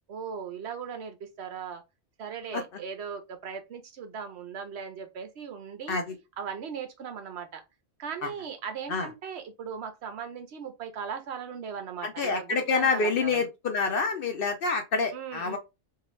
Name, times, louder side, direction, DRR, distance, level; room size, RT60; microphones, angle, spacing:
voice 1, 0.1-1.8 2.2-6.0 6.4-7.6 8.0-13.5 15.1-15.6, right 7 dB, 70° right, 0.9 m, -38 dB
voice 2, 12.0-15.6, left 4 dB, 60° left, 0.7 m, -27 dB
2.7 x 2.4 x 3.0 m
omnidirectional pair, 1.2 m